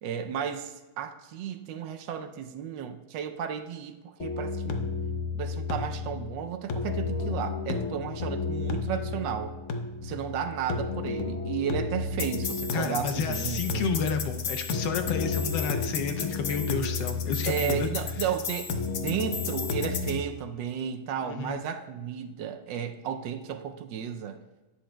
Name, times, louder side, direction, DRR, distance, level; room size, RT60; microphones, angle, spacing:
voice 1, 0.0-4.8 5.3-9.6 10.0-13.9 17.5-24.4, right 8 dB, 75° right, 1.1 m, -33 dB
sound 1, 4.2-20.2, left 4 dB, 90° left, 0.6 m, -32 dB
voice 2, 12.7-17.9 21.2-21.6, left 5 dB, 70° left, 1.3 m, -31 dB
11.0 x 8.1 x 2.2 m
omnidirectional pair, 2.2 m